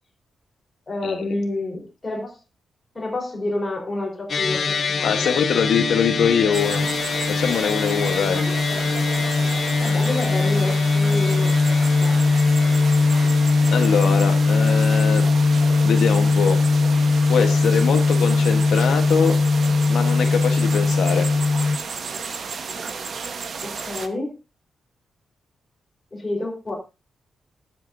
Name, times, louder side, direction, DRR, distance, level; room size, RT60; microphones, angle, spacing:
voice 1, 0.9-2.4 2.9-5.6 8.3-8.8 9.8-11.5 12.0-12.2 23.6-24.3 26.1-26.7, left 2 dB, 20° left, -1 dB, 4.1 m, -29 dB
sound 1, 4.3-21.8, left 3 dB, 45° left, 1.1 m, -20 dB
voice 2, 5.0-6.9 7.4-8.4 13.7-15.3 15.8-16.6 17.3-19.4 19.9-21.5, left 7 dB, 80° left, 5 dB, 1.2 m, -23 dB
Crickets and Stream, 6.5-24.1, right 5 dB, 50° right, 1.1 m, -33 dB
19.5 x 7.5 x 2.7 m, 0.29 s
wide cardioid pair, 150°, 0 cm